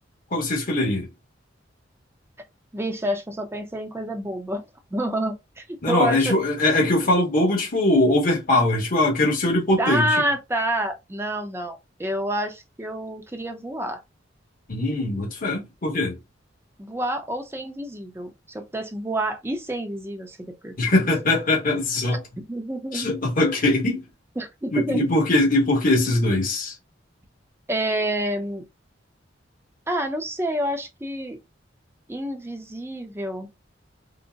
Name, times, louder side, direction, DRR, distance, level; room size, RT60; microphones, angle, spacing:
voice 1, 0.3-1.1 5.8-10.1 14.7-16.2 20.8-22.2 22.9-24.0 24.7-26.7, left 2 dB, 45° left, 1.3 m, -21 dB
voice 2, 2.7-4.6 4.9-6.4 9.8-14.0 16.8-20.4 20.6-20.8 22.4-23.1 24.4-25.0 27.7-28.6 29.9-31.4 32.1-33.5, right 1 dB, 15° right, 0.6 m, -28 dB
3.9 x 2.1 x 2.3 m
head